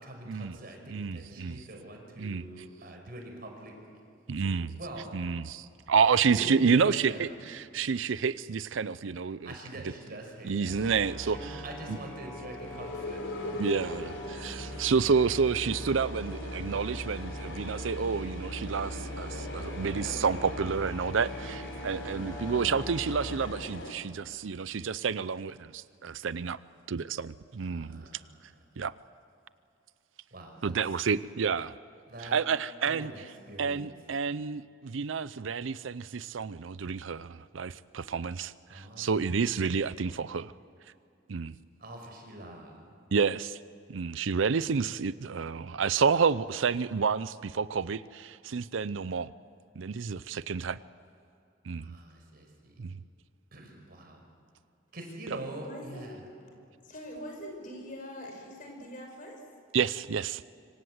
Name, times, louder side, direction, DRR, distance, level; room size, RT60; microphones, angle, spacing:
voice 1, 0.0-3.7 4.4-5.2 6.2-7.2 9.4-14.2 14.4-14.6 27.6-28.3 30.3-30.7 32.1-32.4 32.9-33.2 33.5-33.9 38.7-39.4 41.8-42.7 51.8-52.7 53.5-54.2 54.9-56.2, right 1 dB, 50° right, 5.5 m, -44 dB
voice 2, 0.9-1.7 2.2-2.4 4.3-4.7 5.1-9.5 10.4-11.6 11.9-12.0 13.6-26.6 26.9-28.0 28.8-28.9 30.6-31.8 32.2-33.1 33.6-40.5 41.3-41.6 43.1-43.6 43.9-49.3 49.8-50.8 51.6-52.0 52.8-53.0 59.7-60.4, right 5 dB, 80° right, 0.5 m, -29 dB
sound 1, 9.8-23.9, left 1 dB, 80° left, 3.7 m, -42 dB
Musical instrument, 10.7-23.4, equal, 10° left, 5.4 m, -41 dB
voice 3, 55.6-56.2 56.8-59.4, equal, 45° left, 5.7 m, -43 dB
26.0 x 25.5 x 8.0 m
head